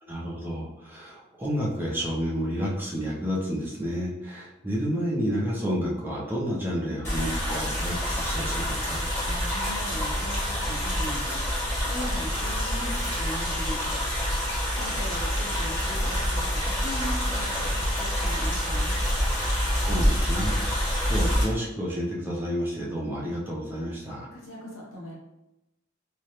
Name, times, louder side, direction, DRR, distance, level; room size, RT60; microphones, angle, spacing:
voice 1, 0.0-9.0 19.8-20.6 21.0-24.3, equal, 10° right, -5 dB, 0.4 m, -30 dB
sound 1, 7.0-21.4, equal, 10° left, 1.0 m, -27 dB
voice 2, 9.2-14.0 14.8-19.0 24.3-25.1, equal, 70° left, -3 dB, 0.8 m, -39 dB
2.3 x 2.0 x 2.9 m, 0.93 s
head